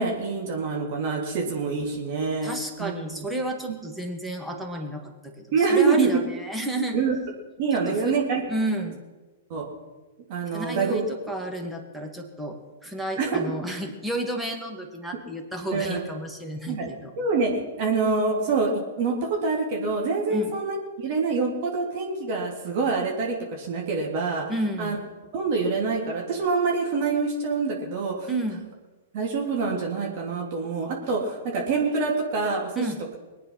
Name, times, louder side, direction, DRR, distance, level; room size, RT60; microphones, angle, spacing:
voice 1, 0.0-2.5 2.8-3.3 5.5-6.2 6.9-7.1 7.6-8.4 9.5-9.7 10.3-11.0 13.2-13.4 15.7-16.0 16.7-16.9 17.2-24.4 24.8-25.0 25.3-28.3 29.1-32.8, right 4 dB, 50° right, 0 dB, 3.4 m, -26 dB
voice 2, 2.4-7.0 7.7-8.1 8.5-9.0 10.5-17.1 20.3-20.5 24.5-25.0 28.3-28.6 32.8-33.0, right 1 dB, 5° right, 2 dB, 2.3 m, -31 dB
22.5 x 9.5 x 5.9 m, 1.2 s
figure-of-eight pair, 105°, 0 cm